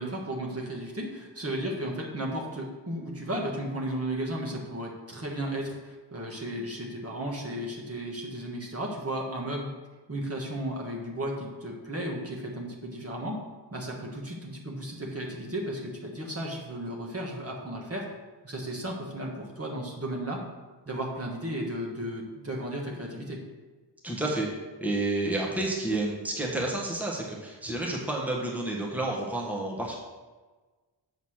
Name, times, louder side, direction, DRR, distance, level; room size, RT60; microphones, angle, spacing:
voice 1, 0.0-9.7 10.1-13.4 13.7-18.0 18.4-20.4 20.9-23.4, right 1 dB, 30° right, -2 dB, 1.4 m, -34 dB
voice 2, 24.0-24.5 24.8-30.0, right 2 dB, 5° right, -2 dB, 1.3 m, -30 dB
7.3 x 4.1 x 6.3 m, 1.3 s
wide cardioid pair, 95°, 44 cm